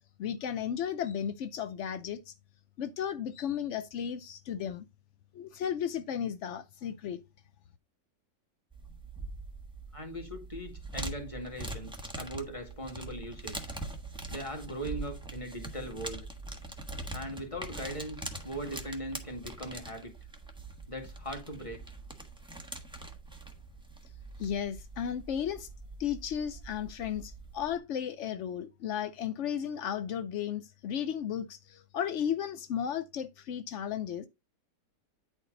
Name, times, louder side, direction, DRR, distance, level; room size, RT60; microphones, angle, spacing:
voice 1, 0.2-2.3 2.8-4.8 5.3-7.2 24.4-25.7 26.0-34.3, left 9 dB, 75° left, 0.6 m, -34 dB
sound 1, 8.7-27.8, right 2 dB, 5° right, 1.0 m, -43 dB
voice 2, 9.9-13.7 14.3-16.3 17.1-20.2 20.9-21.8, equal, 20° left, 2.0 m, -40 dB
9.8 x 4.5 x 3.9 m
omnidirectional pair, 1.9 m